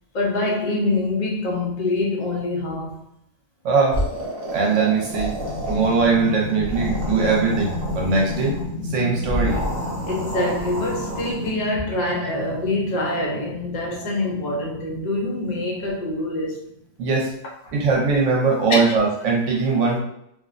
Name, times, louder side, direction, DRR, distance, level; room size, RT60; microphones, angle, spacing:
voice 1, 0.1-3.0 4.4-4.5 10.0-16.6 17.7-17.8 18.7-18.9, left 2 dB, 65° left, 0.4 m, -25 dB
voice 2, 3.6-4.0 4.5-5.3 5.7-8.6 8.9-9.6 12.2-12.3 17.0-17.3 17.7-20.0, right 4 dB, 70° right, 0.9 m, -20 dB
sound 1, 3.9-6.2 6.5-8.7 9.2-11.5, equal, 40° right, 0.5 m, -30 dB
sound 2, 4.7-16.8, left 2 dB, 85° left, 1.1 m, -33 dB
2.6 x 2.0 x 2.4 m
omnidirectional pair, 1.4 m